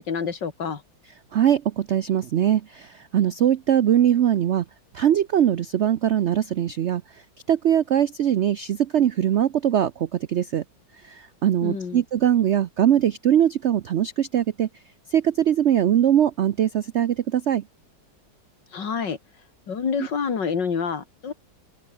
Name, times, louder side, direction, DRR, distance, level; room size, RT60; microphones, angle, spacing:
voice 1, 0.1-0.8 11.6-12.0 18.7-19.2 19.7-21.3, left 6 dB, 70° left, 2.9 m, -27 dB
voice 2, 1.3-4.6 4.9-7.0 7.5-10.6 11.1-14.7 15.1-17.6, right 10 dB, 80° right, 0.6 m, -21 dB
open air
omnidirectional pair, 2.0 m